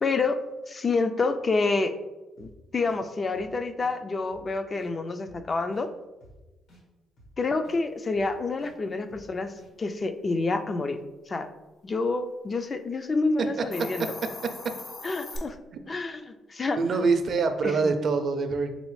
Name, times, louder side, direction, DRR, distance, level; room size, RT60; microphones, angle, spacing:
voice 1, 0.0-1.9 2.4-5.9 7.4-11.0 11.3-11.5 11.8-14.1 15.0-15.6 15.9-16.2 16.5-16.8 17.6-17.9, left 3 dB, 35° left, 8 dB, 0.3 m, -28 dB
sound 1, 2.4-2.5 2.8-3.0 3.3-3.5 3.8-3.9 4.3-4.4 4.8-4.9 5.2-5.4 5.7-5.9 6.2-6.3 6.7-6.8 7.2-7.3 7.6-7.8 8.1-8.3 8.6-8.7 9.1-9.2 9.6-9.7, right 1 dB, 80° left, 1.4 m, -53 dB
Hiss, 13.6-15.4, left 3 dB, 50° left, 0.8 m, -40 dB
voice 2, 16.8-18.7, right 4 dB, 55° right, 8 dB, 0.4 m, -25 dB
4.0 x 3.2 x 3.1 m, 1.1 s
cardioid pair, 90°, 0 cm